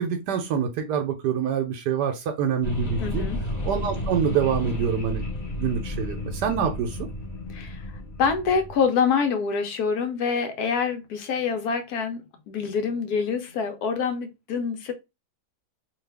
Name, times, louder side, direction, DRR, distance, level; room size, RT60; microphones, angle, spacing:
voice 1, 0.0-3.2 3.7-5.3 5.6-7.0, right 7 dB, 80° right, 1.2 m, -26 dB
sound 1, 2.6-8.8, left 1 dB, 35° left, 0.7 m, -32 dB
voice 2, 3.0-3.4 7.5-7.9 8.2-14.9, left 6 dB, 70° left, 1.1 m, -26 dB
2.8 x 2.3 x 3.3 m
omnidirectional pair, 1.8 m